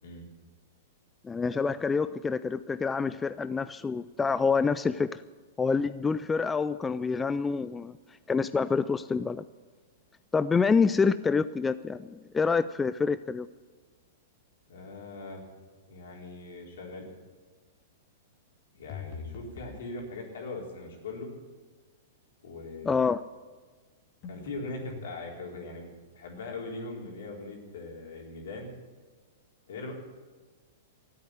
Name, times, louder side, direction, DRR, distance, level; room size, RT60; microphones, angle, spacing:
voice 1, 1.2-5.2 5.6-8.0 8.3-9.4 10.3-13.5 22.8-23.2, left 5 dB, 15° left, 14 dB, 0.4 m, -27 dB
voice 2, 14.7-15.4 15.9-17.0 18.7-21.3 22.4-23.0 24.3-28.7 29.7-29.9, left 3 dB, 70° left, 0 dB, 4.1 m, -40 dB
sound 1, 18.9-19.8 24.2-25.1, left 5 dB, 40° left, 2.6 m, -42 dB
14.0 x 8.7 x 9.5 m, 1.4 s
hypercardioid pair, 110°, 0 cm